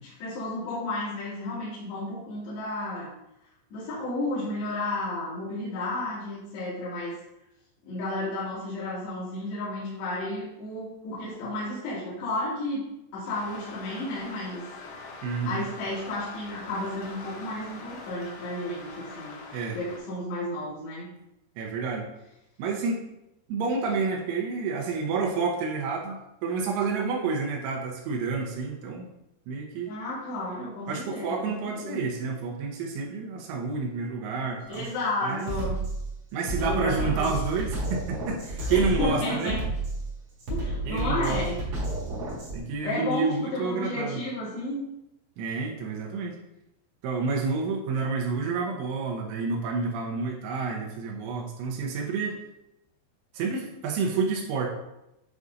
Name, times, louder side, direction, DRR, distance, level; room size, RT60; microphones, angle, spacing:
voice 1, 0.2-3.1 3.7-7.2 7.8-14.6 15.5-19.4 19.7-21.1 29.9-32.0 34.7-35.7 36.6-37.3 38.7-39.6 40.5-41.6 42.8-44.9, left 2 dB, 60° left, -10 dB, 4.0 m, -32 dB
sound 1, 13.3-20.0, left 3 dB, 80° left, 1.8 m, -43 dB
voice 2, 15.2-15.7 19.5-19.8 21.6-22.1 22.6-23.0 23.5-29.1 29.5-29.9 30.9-34.9 35.2-35.5 36.3-39.6 40.9-41.5 42.5-44.2 45.4-46.4 47.0-52.4 53.3-54.7, right 4 dB, 80° right, -1 dB, 3.2 m, -29 dB
Drum kit, 34.7-34.9 35.4-42.6, right 2 dB, 60° right, 1.5 m, -31 dB
9.6 x 4.8 x 2.6 m, 0.86 s
omnidirectional pair, 5.6 m